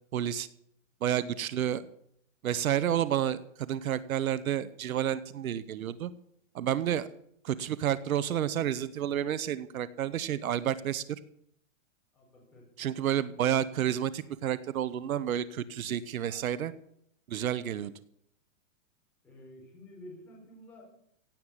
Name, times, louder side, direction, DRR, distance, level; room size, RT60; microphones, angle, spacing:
voice 1, 0.1-0.5 1.0-1.8 2.4-6.1 6.5-7.1 7.4-11.2 12.8-16.7 17.3-17.9, right 10 dB, 85° right, 16 dB, 1.1 m, -30 dB
voice 2, 12.1-12.9 16.2-16.5 19.2-20.8, left 1 dB, 5° left, -6 dB, 4.6 m, -51 dB
16.5 x 8.8 x 8.2 m, 0.70 s
hypercardioid pair, 175°, 41 cm